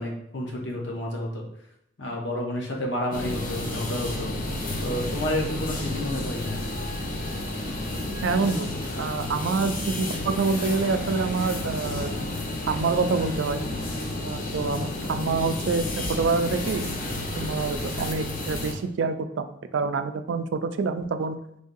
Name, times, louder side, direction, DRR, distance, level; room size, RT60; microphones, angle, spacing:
voice 1, 0.0-1.4 2.0-4.3 4.8-6.6, left 1 dB, 75° left, 0 dB, 1.0 m, -30 dB
sound 1, 3.1-18.7, left 2 dB, 45° left, 0.6 m, -31 dB
voice 2, 8.2-8.7 9.0-12.3 12.7-13.6 14.2-16.9 17.4-21.4, right 4 dB, 75° right, 10 dB, 0.3 m, -27 dB
3.8 x 3.4 x 2.6 m, 0.76 s
head